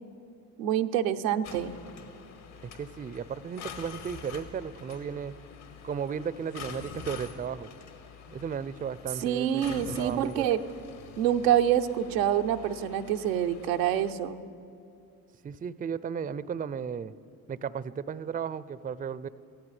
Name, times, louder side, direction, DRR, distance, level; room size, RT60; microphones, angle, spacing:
voice 1, 0.6-1.8 9.2-10.6 11.2-14.4, right 10 dB, 90° right, 6 dB, 0.7 m, -26 dB
sound 1, 1.4-14.1, left 6 dB, 65° left, 1.8 m, -46 dB
voice 2, 2.6-5.3 5.8-7.7 8.3-10.5 15.4-17.1 17.5-19.3, right 7 dB, 20° right, 17 dB, 0.4 m, -35 dB
27.0 x 16.0 x 3.3 m, 2.5 s
hypercardioid pair, 50°, 49 cm